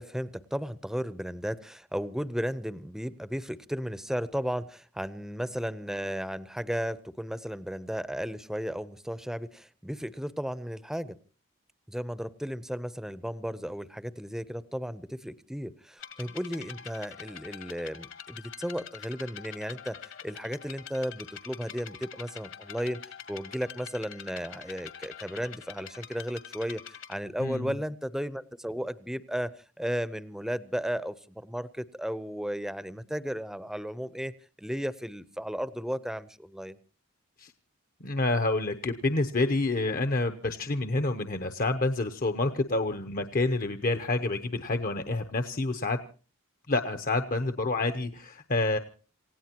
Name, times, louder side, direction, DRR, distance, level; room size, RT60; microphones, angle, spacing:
voice 1, 0.0-11.2 11.9-23.0 23.3-34.3 34.6-36.8, equal, ahead, 16 dB, 0.7 m, -34 dB
sound 1, 16.0-27.2, left 8 dB, 65° left, 2.1 m, -45 dB
voice 2, 27.4-27.8 37.4-37.5 38.0-46.0 46.7-48.8, left 2 dB, 45° left, 9 dB, 0.9 m, -28 dB
28.0 x 17.0 x 3.0 m, 0.37 s
head